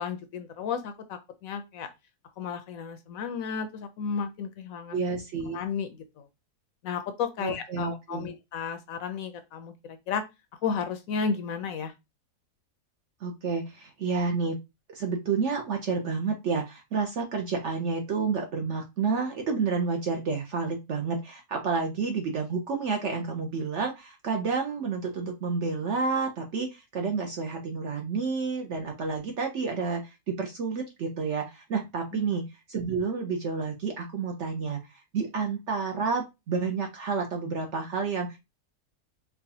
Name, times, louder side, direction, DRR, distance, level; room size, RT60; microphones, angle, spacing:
voice 1, 0.0-1.9 2.4-5.0 5.5-6.2 6.8-10.2 10.6-11.9 32.1-32.2, left 6 dB, 70° left, 8 dB, 0.9 m, -33 dB
voice 2, 4.9-5.6 7.4-8.3 13.2-14.6 14.9-38.4, right 5 dB, 60° right, 3 dB, 0.8 m, -30 dB
4.6 x 2.2 x 2.7 m, 0.23 s
omnidirectional pair, 1.7 m